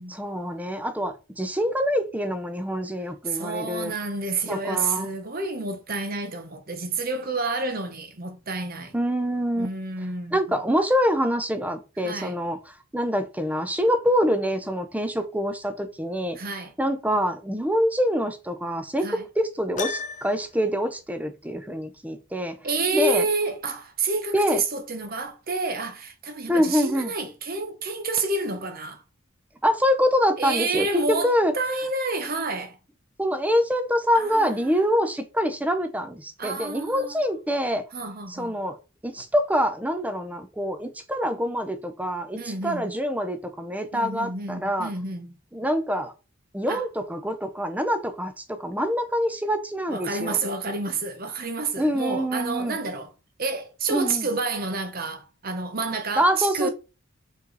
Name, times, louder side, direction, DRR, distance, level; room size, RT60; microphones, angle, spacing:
voice 1, 0.1-3.9 4.5-5.1 8.9-9.7 10.3-16.4 16.8-22.6 22.9-23.2 24.3-24.6 26.5-27.1 29.6-31.5 33.2-37.8 38.3-38.8 39.0-44.9 45.5-46.1 46.5-50.4 51.8-52.8 53.9-54.3 56.2-56.7, equal, 5° right, 0.7 m, -25 dB
voice 2, 3.2-8.9 9.6-10.6 12.0-12.3 16.3-16.7 19.0-19.3 22.6-29.0 30.4-32.8 34.1-34.7 36.4-37.2 37.9-38.6 42.4-43.0 43.9-45.4 46.7-46.8 49.9-53.1 53.4-56.7, right 3 dB, 45° right, 1.0 m, -29 dB
Piano, 19.8-20.6, left 5 dB, 35° left, 0.6 m, -32 dB
5.3 x 4.7 x 4.0 m
head